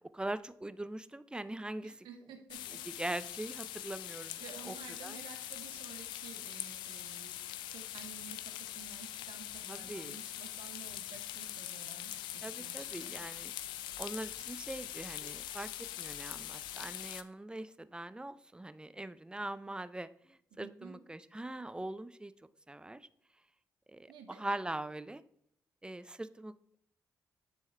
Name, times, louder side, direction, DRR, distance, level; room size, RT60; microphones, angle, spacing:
voice 1, 0.1-2.1 3.0-4.7 5.0-5.2 9.6-10.2 12.4-13.5 14.0-22.3 22.7-23.1 23.9-25.2 25.8-26.8, right 1 dB, 10° right, 14 dB, 0.5 m, -42 dB
voice 2, 1.8-2.8 4.4-13.1 20.5-21.0 24.1-24.4, right 7 dB, 85° right, 5 dB, 0.8 m, -53 dB
sound 1, 2.5-17.2, left 12 dB, 85° left, 0.3 m, -43 dB
10.0 x 3.5 x 3.3 m, 0.69 s
supercardioid pair, 50°, 8 cm